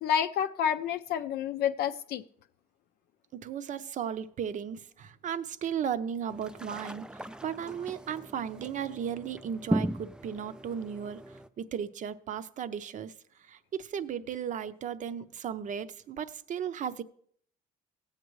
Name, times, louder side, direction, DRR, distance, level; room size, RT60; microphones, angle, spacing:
voice 1, 0.0-2.2, left 9 dB, 70° left, 7 dB, 0.4 m, -29 dB
voice 2, 3.3-11.2 11.6-13.1 13.4-17.0, right 8 dB, 50° right, 12 dB, 0.6 m, -35 dB
sound 1, 6.3-11.5, right 1 dB, 5° right, 0.3 m, -37 dB
17.0 x 8.1 x 3.1 m, 0.62 s
cardioid pair, 110°, 17 cm